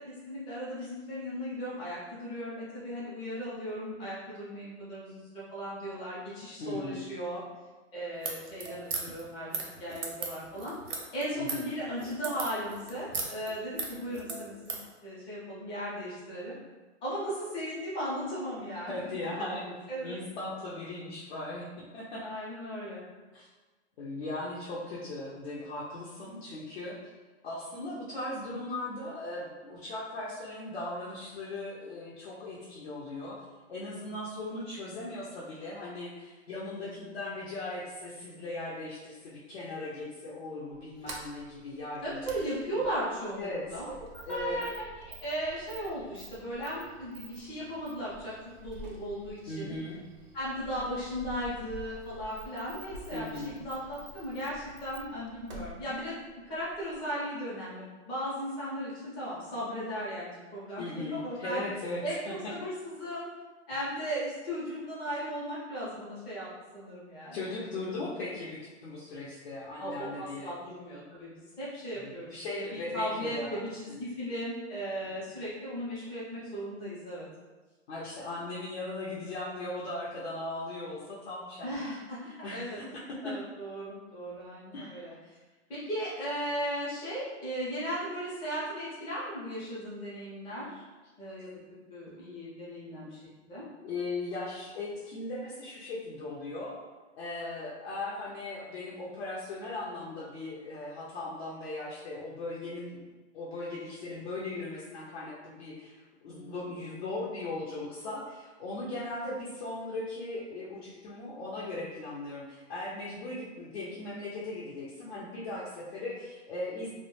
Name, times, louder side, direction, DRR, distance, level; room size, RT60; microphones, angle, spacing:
voice 1, 0.3-7.4 7.9-10.8 11.1-14.8 15.0-16.5 17.0-18.9 19.9-20.2 22.2-23.0 36.6-37.1 42.0-48.3 48.6-49.7 50.3-56.2 56.5-61.6 62.0-63.3 63.7-67.6 67.9-68.1 69.8-77.3 81.6-82.2 82.5-82.8 83.2-85.1 85.7-90.8 91.2-91.5 91.9-93.2 93.5-93.6 106.3-106.7, equal, 15° left, -8 dB, 0.5 m, -37 dB
voice 2, 6.6-7.0 11.3-11.7 18.8-19.7 20.0-22.2 23.3-23.5 24.0-27.0 27.4-33.4 33.7-42.3 43.3-43.8 44.3-44.6 49.5-50.0 53.1-53.6 60.8-62.3 67.3-70.5 72.0-73.6 73.9-74.0 75.0-75.1 77.9-81.8 82.3-82.9 83.2-83.3 84.7-85.2 93.8-96.8 97.2-103.0 103.3-105.9 106.2-116.9, left 2 dB, 60° left, -7 dB, 0.6 m, -38 dB
sound 1, 8.1-14.9, right 4 dB, 85° right, 0.7 m, -37 dB
Sliding door, 40.7-57.1, right 2 dB, 40° right, 0.4 m, -49 dB
2.1 x 2.1 x 3.0 m, 1.2 s
hypercardioid pair, 145°, 36 cm